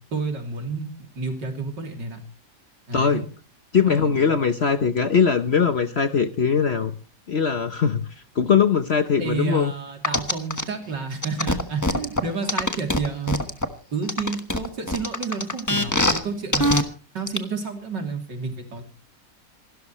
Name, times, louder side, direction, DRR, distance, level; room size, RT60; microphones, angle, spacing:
voice 1, 0.1-0.9 1.2-2.2 2.9-3.2 3.8-4.4 9.2-13.4 13.9-16.8 17.1-18.8, right 4 dB, 80° right, 3 dB, 3.6 m, -30 dB
voice 2, 3.7-6.9 7.3-8.1 8.4-9.7, left 6 dB, 45° left, 9 dB, 0.9 m, -21 dB
sound 1, 10.0-10.6 11.2-13.7 14.1-16.2 16.5-16.8 17.3-17.4, left 1 dB, 10° left, 1.0 m, -22 dB
27.5 x 13.0 x 3.1 m, 0.36 s
omnidirectional pair, 1.9 m